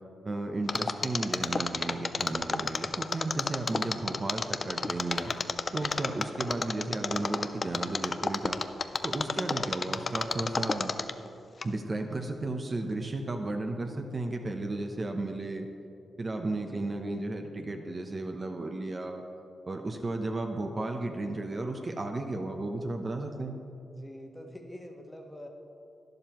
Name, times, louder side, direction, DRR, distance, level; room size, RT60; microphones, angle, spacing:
voice 1, 0.2-5.3 5.7-8.6 9.0-10.9 11.6-15.7 16.2-19.2 19.7-23.6, right 2 dB, 40° right, 4 dB, 0.8 m, -34 dB
Mechanisms, 0.7-11.3 11.6-11.7, left 4 dB, 45° left, 0.4 m, -30 dB
voice 2, 16.7-17.2 23.9-25.5, left 1 dB, 15° left, 2 dB, 1.3 m, -46 dB
11.5 x 10.5 x 3.0 m, 2.6 s
cardioid pair, 65°, 0 cm